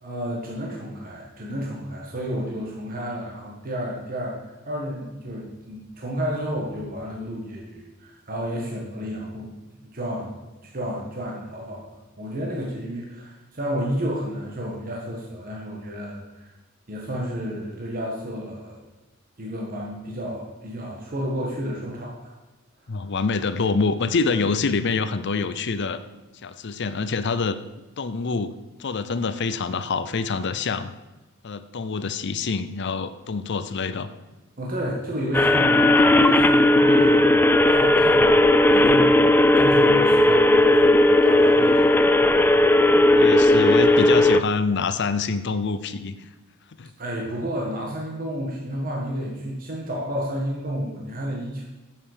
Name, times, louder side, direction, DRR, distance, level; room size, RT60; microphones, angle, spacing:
voice 1, 0.0-4.4 4.7-9.5 9.9-16.5 16.9-18.8 19.4-22.3 34.6-41.9 42.3-42.6 47.0-51.6, equal, 45° right, -2 dB, 1.7 m, -31 dB
voice 2, 22.9-26.0 26.4-27.6 28.0-28.5 28.8-30.9 31.4-34.1 43.1-46.3 46.8-46.9, left 4 dB, 55° left, 12 dB, 0.6 m, -26 dB
sound 1, 35.3-44.4, left 1 dB, 10° left, 0.3 m, -16 dB
10.0 x 7.8 x 5.1 m, 1.1 s
head